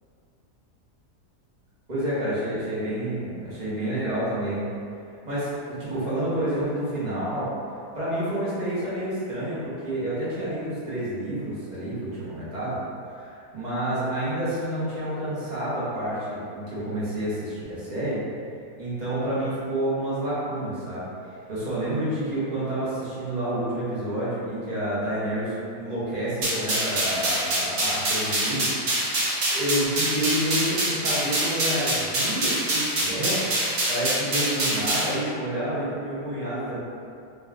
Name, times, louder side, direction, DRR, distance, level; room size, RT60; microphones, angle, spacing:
voice 1, 1.9-4.6 5.2-7.5 7.9-12.8 13.1-18.2 18.8-21.1 21.5-28.7 29.5-36.8, right 1 dB, 25° right, -11 dB, 1.2 m, -29 dB
sound 1, 26.4-35.1, right 1 dB, 70° right, 1.4 m, -25 dB
3.4 x 3.0 x 3.6 m, 2.5 s
omnidirectional pair, 1.8 m